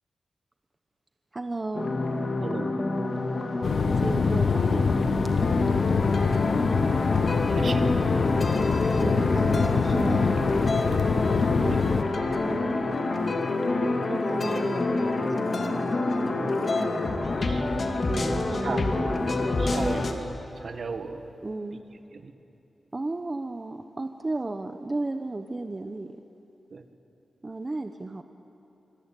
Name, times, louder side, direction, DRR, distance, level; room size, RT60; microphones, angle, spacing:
voice 1, 1.3-1.9 3.9-4.9 8.3-8.7 9.0-10.8 12.4-13.2 14.1-15.0 15.4-16.9 18.1-19.3 19.7-19.8 21.4-21.8 22.9-26.2 27.4-28.2, right 2 dB, 25° right, 7 dB, 0.9 m, -34 dB
sound 1, 1.7-20.1, left 2 dB, 45° left, 2.4 m, -27 dB
voice 2, 2.4-2.7 7.5-7.9 11.6-11.8 17.4-17.7 18.6-19.2 19.6-20.2 20.6-21.3 22.1-22.3 26.7-26.8, right 4 dB, 55° right, 7 dB, 1.7 m, -35 dB
sound 2, 3.6-12.0, left 5 dB, 65° left, 1.1 m, -25 dB
25.0 x 23.5 x 9.2 m, 2.9 s
wide cardioid pair, 115°, 0 cm